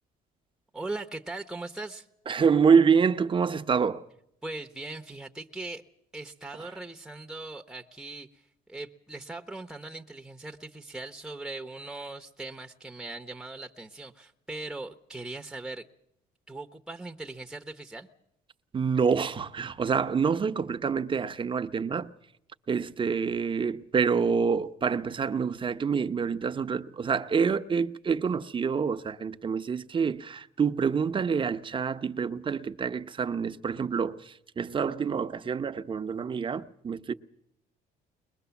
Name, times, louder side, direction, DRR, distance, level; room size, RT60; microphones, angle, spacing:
voice 1, 0.7-2.1 4.4-5.8 6.1-8.3 8.7-15.8 16.5-18.1, right 2 dB, 5° right, 1.0 m, -39 dB
voice 2, 2.3-4.1 6.6-6.7 18.7-22.1 22.7-37.1, right 6 dB, 30° right, 0.9 m, -27 dB
21.5 x 21.5 x 7.1 m
cardioid pair, 110°, 17 cm